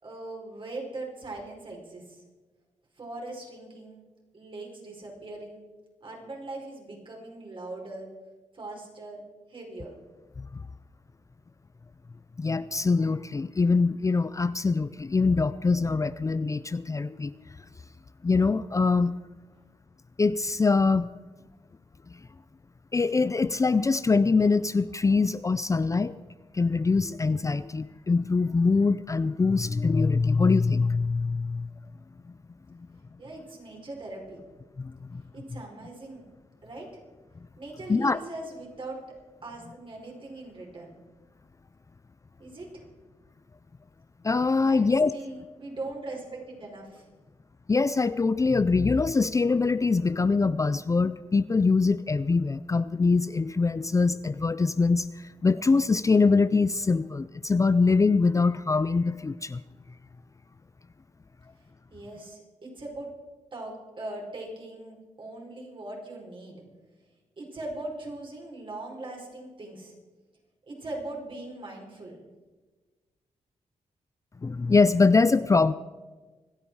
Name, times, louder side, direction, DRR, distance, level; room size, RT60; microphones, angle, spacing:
voice 1, 0.0-2.2 3.0-4.1 4.3-5.6 6.0-8.1 8.5-9.9 33.2-34.4 35.3-36.2 36.6-36.9 37.6-39.0 39.4-40.9 42.4-42.9 44.7-47.1 61.9-63.1 63.5-66.6 67.4-69.9 70.7-72.2, right 2 dB, 45° right, -1 dB, 5.1 m, -40 dB
voice 2, 12.4-17.3 18.2-19.2 20.2-21.1 22.1-22.2 22.9-26.2 26.5-31.7 34.8-35.2 37.9-38.2 44.2-45.1 47.7-59.6 74.4-75.7, left 4 dB, 25° left, 14 dB, 0.5 m, -23 dB
26.0 x 9.0 x 4.8 m, 1.3 s
wide cardioid pair, 105°, 12 cm